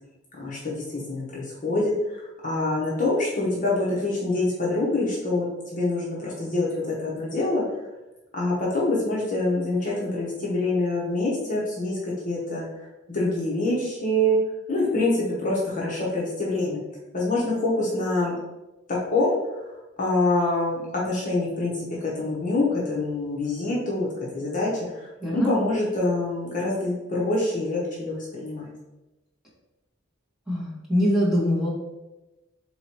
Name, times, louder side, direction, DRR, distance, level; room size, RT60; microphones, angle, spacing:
voice 1, 0.4-7.6 8.3-14.4 14.7-16.8 17.1-18.3 18.9-19.6 20.0-28.7, left 2 dB, 40° left, -5 dB, 0.9 m, -26 dB
voice 2, 30.5-31.7, equal, ahead, -8 dB, 1.4 m, -23 dB
3.8 x 2.9 x 4.3 m, 1.0 s
head